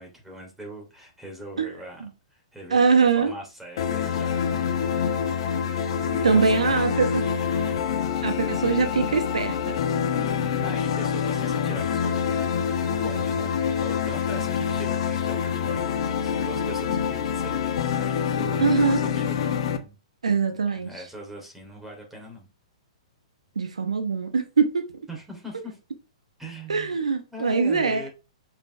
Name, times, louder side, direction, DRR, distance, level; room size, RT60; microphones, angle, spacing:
voice 1, 0.0-2.0 2.3-4.9 6.3-6.8 8.2-8.4 10.1-12.6 12.8-13.5 13.8-20.0 20.5-22.5 25.1-25.8 26.4-27.0 27.3-28.1, equal, 5° right, 2.9 m, -41 dB
voice 2, 2.7-3.3 6.2-6.9 8.2-9.7 18.6-19.0 20.2-20.9 23.6-24.9 26.7-28.1, right 5 dB, 85° right, 1.1 m, -22 dB
sound 1, 3.8-19.8, left 7 dB, 60° left, 1.3 m, -26 dB
6.6 x 5.7 x 3.3 m
hypercardioid pair, 125°, 3 cm